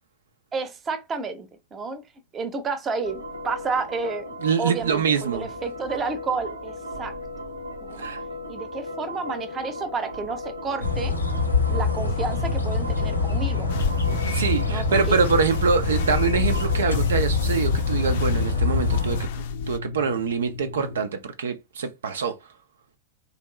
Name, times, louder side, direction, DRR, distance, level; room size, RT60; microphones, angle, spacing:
voice 1, 0.5-2.0 2.3-4.3 4.6-7.1 7.8-8.0 8.5-11.1 11.7-13.7 14.7-15.2, right 4 dB, 25° right, 0.7 m, -31 dB
sound 1, 3.0-21.0, left 2 dB, 85° right, 0.8 m, -35 dB
voice 2, 4.4-5.5 8.0-8.2 14.3-22.4, right 5 dB, 65° right, 0.4 m, -25 dB
sound 2, 10.8-19.3, left 4 dB, 80° left, 0.7 m, -25 dB
sound 3, 13.7-19.8, left 6 dB, 55° left, 0.4 m, -33 dB
3.4 x 2.5 x 3.0 m
figure-of-eight pair, 90°, 0 cm